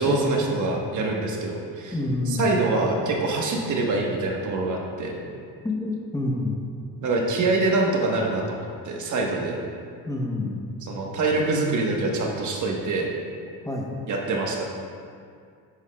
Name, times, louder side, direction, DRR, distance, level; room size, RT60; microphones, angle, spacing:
voice 1, 0.0-1.9 2.3-5.2 7.0-9.6 10.8-13.1 14.1-14.7, right 3 dB, 50° right, 0 dB, 1.3 m, -25 dB
voice 2, 1.9-2.4 5.6-6.6 10.1-10.6 13.6-13.9, left 2 dB, 10° left, -1 dB, 0.9 m, -27 dB
10.0 x 8.1 x 2.3 m, 2.2 s
cardioid pair, 105°, 38 cm